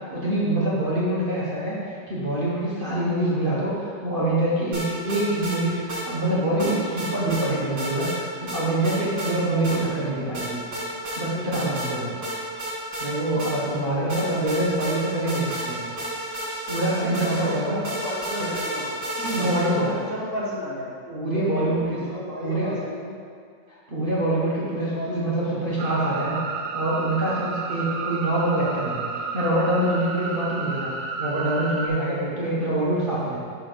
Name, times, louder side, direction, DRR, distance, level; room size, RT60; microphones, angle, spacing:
voice 1, 0.1-10.6 11.2-12.1 13.0-15.8 16.7-17.8 19.2-19.9 21.1-22.0 22.4-22.7 23.7-33.4, right 1 dB, 35° right, -8 dB, 1.1 m, -25 dB
sound 1, 4.7-5.6 5.9-6.0 6.6-7.5 7.8-8.2 8.5-9.3 9.6-9.8 10.3-11.2 11.5-11.9 12.2-13.8 14.1-19.9, right 1 dB, 60° right, 2.4 m, -31 dB
voice 2, 13.8-14.3 17.0-18.9 19.4-20.9 21.2-23.2 24.6-25.3, equal, 35° left, -8 dB, 1.1 m, -33 dB
sound 2, 25.8-31.9, right 4 dB, 90° right, 0.6 m, -31 dB
5.8 x 4.6 x 6.0 m, 2.2 s
omnidirectional pair, 2.0 m